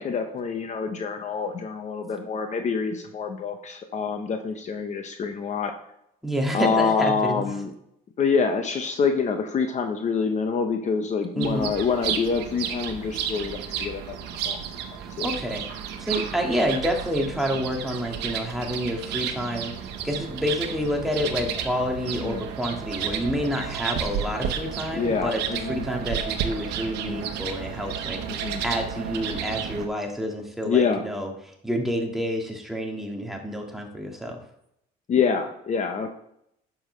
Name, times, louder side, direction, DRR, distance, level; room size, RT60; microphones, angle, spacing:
voice 1, 0.0-5.7 6.5-7.7 8.2-14.6 15.2-15.3 22.1-22.4 24.9-25.8 26.9-27.3 28.3-28.6 30.7-31.0 35.1-36.1, left 5 dB, 45° left, 6 dB, 0.9 m, -26 dB
voice 2, 6.2-7.5 11.4-11.7 15.2-15.7 16.0-19.7 20.0-25.4 25.7-31.3 31.6-34.4, equal, ahead, 1 dB, 1.8 m, -28 dB
sound 1, 11.4-29.9, right 8 dB, 85° right, 1.0 m, -32 dB
10.0 x 7.1 x 3.3 m, 0.76 s
cardioid pair, 110°, 17 cm